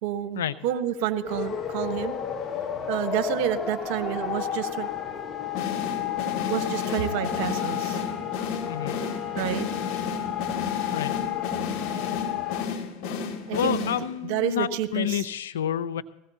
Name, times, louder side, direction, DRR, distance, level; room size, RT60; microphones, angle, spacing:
voice 1, 0.0-2.2 2.9-4.9 6.4-8.0 9.4-9.7 13.5-15.2, right 10 dB, 65° right, 11 dB, 1.2 m, -29 dB
sound 1, 1.2-12.7, left 10 dB, 30° left, 1.2 m, -32 dB
sound 2, 5.6-14.4, left 5 dB, 55° left, 2.1 m, -33 dB
voice 2, 8.7-9.0 10.9-11.1 13.5-16.0, left 10 dB, 85° left, 12 dB, 0.6 m, -29 dB
21.0 x 16.0 x 2.8 m, 0.88 s
hypercardioid pair, 95°, 0 cm